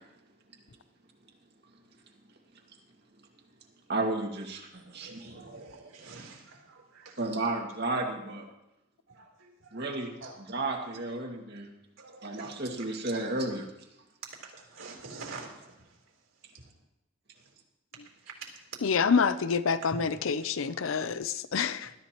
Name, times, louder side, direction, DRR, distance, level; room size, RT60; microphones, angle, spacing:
voice 1, 3.9-4.7 4.9-5.2 7.2-8.5 9.7-10.1 10.5-11.7 12.2-13.6, right 2 dB, 55° right, 1 dB, 2.1 m, -32 dB
voice 2, 4.7-7.2 9.1-10.7 12.0-12.5 13.1-13.2 14.4-16.0 16.5-16.7 17.4-17.5 18.2-18.5 19.3-19.4 19.8-20.5 21.8-21.9, right 3 dB, 90° right, 0 dB, 3.8 m, -47 dB
voice 3, 18.8-21.9, left 5 dB, 90° left, 14 dB, 0.6 m, -27 dB
20.5 x 13.5 x 3.0 m, 0.86 s
head